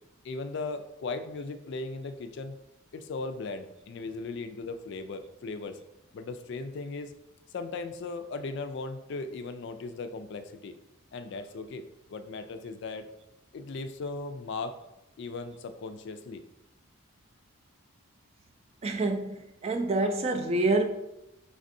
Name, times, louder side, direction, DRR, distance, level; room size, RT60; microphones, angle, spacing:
voice 1, 0.2-2.5 2.9-5.8 6.1-7.1 7.5-10.8 11.1-13.1 13.5-14.8 15.2-16.4, left 3 dB, 55° left, 0.3 m, -37 dB
voice 2, 18.8-20.9, right 2 dB, 30° right, 0.3 m, -27 dB
5.2 x 3.4 x 2.6 m
head